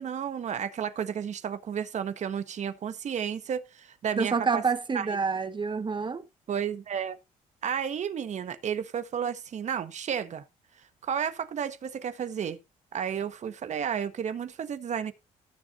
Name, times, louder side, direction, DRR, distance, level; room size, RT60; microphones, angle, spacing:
voice 1, 0.0-4.6 4.9-5.1 6.5-7.2 7.6-10.4 11.0-12.6 12.9-15.1, right 8 dB, 55° right, 1.5 m, -32 dB
voice 2, 4.2-6.2, right 5 dB, 35° right, 1.6 m, -28 dB
18.5 x 7.2 x 2.7 m
supercardioid pair, 70°, 14 cm